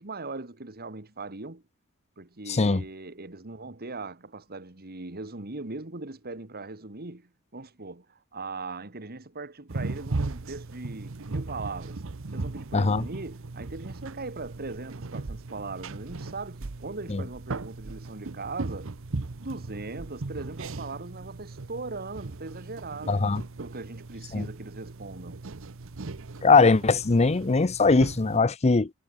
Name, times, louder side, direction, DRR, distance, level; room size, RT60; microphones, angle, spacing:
voice 1, 0.0-1.6 2.2-12.0 12.3-18.9 19.4-23.2 23.6-25.4, right 3 dB, 45° right, 2.0 m, -39 dB
voice 2, 2.5-2.8 12.7-13.0 17.1-17.2 23.1-23.4 24.3-24.5 26.4-28.9, left 4 dB, 30° left, 0.6 m, -21 dB
sound 1, 9.7-28.4, right 3 dB, 65° right, 0.9 m, -37 dB
head